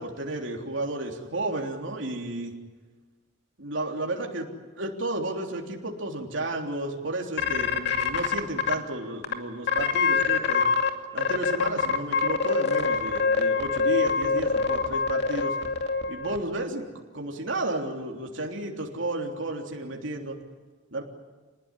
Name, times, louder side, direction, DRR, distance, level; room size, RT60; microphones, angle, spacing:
voice 1, 0.0-2.5 3.6-4.5 4.8-10.7 11.1-15.6 16.1-16.9 17.1-20.4 20.9-21.0, right 2 dB, 70° right, 1 dB, 3.4 m, -32 dB
sound 1, 7.4-8.7 9.2-9.3 9.7-10.9 11.2-16.4, left 5 dB, 60° left, 2.5 m, -24 dB
28.0 x 20.0 x 9.9 m, 1.3 s
head